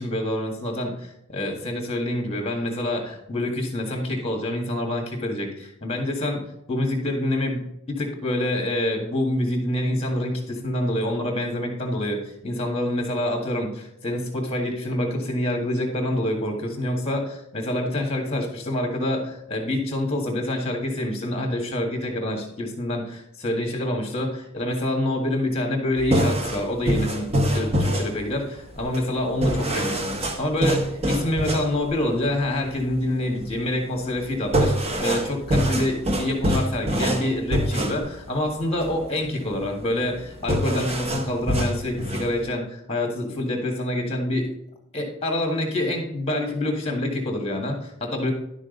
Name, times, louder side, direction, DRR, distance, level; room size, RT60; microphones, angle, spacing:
voice 1, 0.0-6.4 6.7-44.5 44.9-48.3, left 1 dB, 25° left, 2 dB, 1.8 m, -26 dB
sound 1, 26.0-42.5, equal, 25° right, 0.9 m, -26 dB
11.5 x 6.3 x 4.0 m, 0.80 s
head